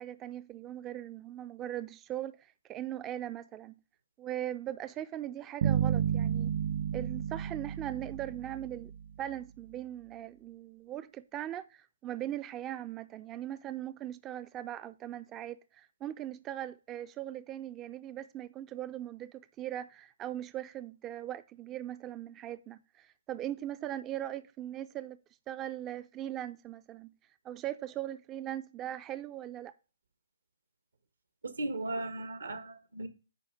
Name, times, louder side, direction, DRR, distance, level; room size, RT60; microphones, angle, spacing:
voice 1, 0.0-3.8 4.2-6.6 6.9-8.9 9.2-25.2 25.5-27.1 27.4-29.7, right 12 dB, 20° right, 0.3 m, -40 dB
sound 1, 5.6-9.0, right 8 dB, 65° right, 1.3 m, -31 dB
voice 2, 31.4-33.1, right 2 dB, 90° right, 1.5 m, -36 dB
9.2 x 3.3 x 6.3 m
hypercardioid pair, 145°, 0 cm